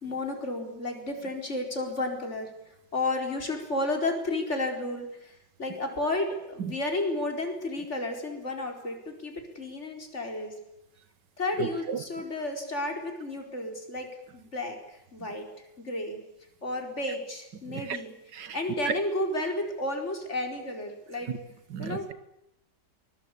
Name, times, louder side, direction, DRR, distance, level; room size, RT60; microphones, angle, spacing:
voice 1, 0.0-2.5 2.9-5.3 5.6-10.5 11.4-14.1 14.3-14.8 15.1-15.5 15.8-16.2 16.6-18.1 18.5-21.3 21.8-22.1, left 2 dB, 40° left, 3 dB, 4.8 m, -32 dB
voice 2, 11.6-12.0 17.7-18.0 18.3-18.6 18.9-19.0 21.3-21.4 21.7-22.1, right 7 dB, 80° right, 14 dB, 2.0 m, -33 dB
24.0 x 20.5 x 8.5 m, 0.86 s
omnidirectional pair, 1.9 m